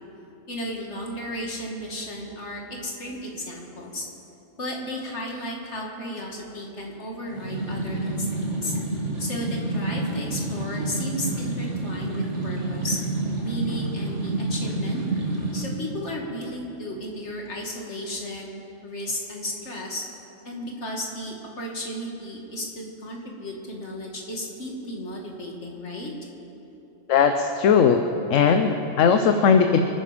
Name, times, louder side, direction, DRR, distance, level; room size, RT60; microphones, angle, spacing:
voice 1, 0.5-4.1 4.6-8.7 9.2-13.0 13.4-15.0 15.5-18.5 18.8-20.0 20.4-26.1, equal, 60° left, -1 dB, 2.4 m, -34 dB
sound 1, 7.3-15.6, right 2 dB, 65° right, 2.2 m, -29 dB
voice 2, 27.1-28.0 28.3-29.8, left 6 dB, 75° left, 7 dB, 1.1 m, -18 dB
25.5 x 9.6 x 5.1 m, 3.0 s
omnidirectional pair, 1.3 m